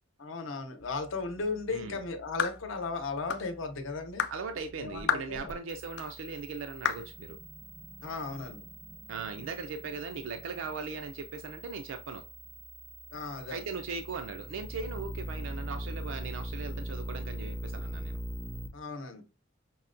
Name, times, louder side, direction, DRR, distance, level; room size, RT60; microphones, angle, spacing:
voice 1, 0.2-4.2 4.8-5.5 8.0-8.6 13.1-13.7 18.7-19.2, left 3 dB, 85° left, 6 dB, 0.7 m, -36 dB
sound 1, 0.8-18.7, equal, 15° right, 0.3 m, -43 dB
sound 2, 2.4-2.6 3.3-3.5 4.2-4.4 5.1-5.3 6.0-6.1 6.8-7.1, left 7 dB, 60° left, 0.3 m, -30 dB
voice 2, 4.3-7.4 9.1-12.2 13.5-18.2, right 4 dB, 80° right, 6 dB, 0.4 m, -39 dB
5.5 x 2.2 x 2.5 m, 0.32 s
head